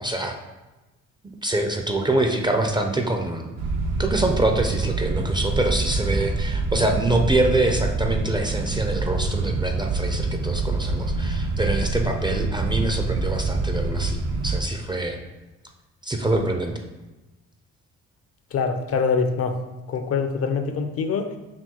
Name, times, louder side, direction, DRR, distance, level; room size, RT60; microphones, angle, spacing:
voice 1, 0.0-0.4 1.4-3.5 4.0-15.2 16.0-16.8, right 2 dB, 15° right, 4 dB, 0.4 m, -25 dB
sound 1, 3.6-14.6, right 3 dB, 70° right, 0.5 m, -26 dB
voice 2, 18.5-19.5 19.9-21.3, left 5 dB, 50° left, 7 dB, 0.4 m, -24 dB
5.9 x 2.2 x 2.9 m, 1.1 s
cardioid pair, 90°, 30 cm